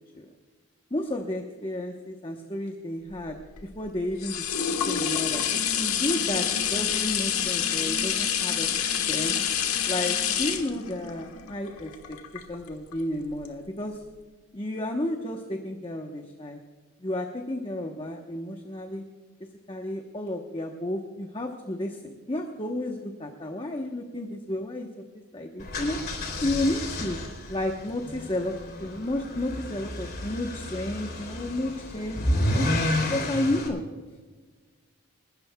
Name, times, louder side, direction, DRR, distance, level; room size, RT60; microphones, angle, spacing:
voice 1, 0.9-3.4 3.6-4.4 4.9-5.5 5.7-8.7 9.1-9.4 9.9-14.0 14.5-16.6 17.0-19.0 19.7-24.9 25.3-27.2 27.5-28.5 28.8-33.8, left 1 dB, 25° left, 3 dB, 1.0 m, -32 dB
sound 1, 3.2-12.9 13.5-13.6, left 8 dB, 75° left, 1.4 m, -27 dB
sound 2, 25.6-33.7, left 1 dB, 45° left, 3.1 m, -31 dB
29.5 x 13.0 x 2.3 m, 1.4 s
head